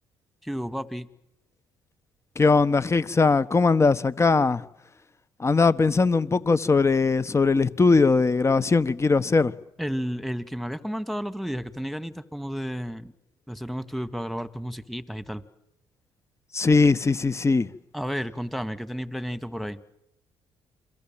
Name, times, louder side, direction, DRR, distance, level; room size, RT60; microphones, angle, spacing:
voice 1, 0.4-1.1 9.8-13.1 13.5-15.4 17.9-19.8, equal, ahead, 1.9 m, -32 dB
voice 2, 2.4-4.6 5.4-9.5 16.5-17.7, left 4 dB, 30° left, 1.3 m, -20 dB
29.0 x 23.0 x 7.6 m
supercardioid pair, 65°, 10 cm